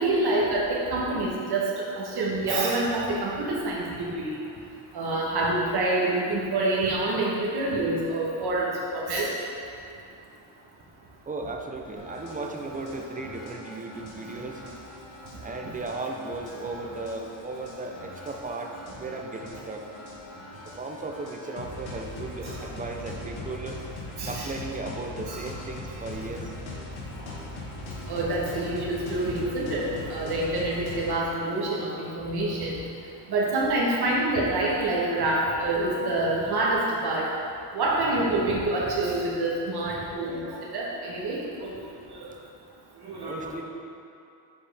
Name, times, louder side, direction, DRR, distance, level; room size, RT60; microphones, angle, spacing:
voice 1, 0.0-1.7 2.0-4.4 4.9-9.3 22.4-22.5 24.2-24.5 25.3-25.4 28.1-32.8 33.3-37.3 37.7-41.7 42.1-42.2 43.1-43.6, right 2 dB, 55° right, -5 dB, 1.2 m, -27 dB
voice 2, 11.3-14.6 15.4-19.9 20.7-23.8 24.3-26.5 43.2-43.6, right 3 dB, 20° right, 2 dB, 0.3 m, -36 dB
sound 1, 12.0-31.2, left 2 dB, 70° left, 1.5 m, -41 dB
7.4 x 4.4 x 3.4 m, 2.6 s
cardioid pair, 115°, 48 cm